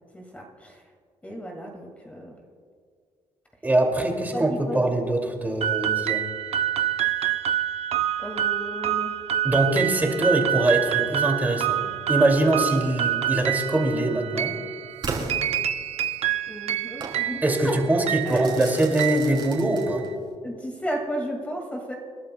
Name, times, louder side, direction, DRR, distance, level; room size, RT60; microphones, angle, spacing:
voice 1, 0.1-0.8 1.2-2.4 4.3-4.9 8.2-9.1 16.5-17.8 18.2-18.5 19.6-19.7 20.4-21.9, equal, 10° left, 0 dB, 2.0 m, -33 dB
voice 2, 3.6-6.2 9.4-11.8 12.1-14.5 17.4-20.0, right 2 dB, 15° right, 1 dB, 2.3 m, -23 dB
sound 1, 5.6-20.1, right 11 dB, 60° right, 0.6 m, -27 dB
Crackle / Fireworks, 15.0-16.2 17.0-17.2 18.2-20.2, right 4 dB, 45° right, 3.3 m, -35 dB
29.0 x 11.5 x 2.2 m, 2.1 s
cardioid pair, 115°, 12 cm